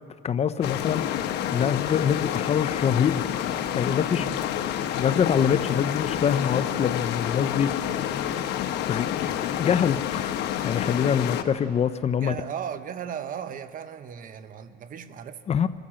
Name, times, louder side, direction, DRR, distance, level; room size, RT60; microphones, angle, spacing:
voice 1, 0.2-1.0 1.5-3.4 3.7-4.3 5.0-7.9 8.5-8.6 8.9-9.3 9.6-10.3 10.6-12.4 15.5-15.7, left 8 dB, 40° left, 13 dB, 0.6 m, -25 dB
sound 1, 0.6-11.4, left 10 dB, 80° left, 1.1 m, -28 dB
voice 2, 4.1-4.4 12.1-15.4, right 8 dB, 55° right, 12 dB, 0.9 m, -36 dB
26.5 x 13.0 x 7.5 m, 2.6 s
cardioid pair, 110°, 17 cm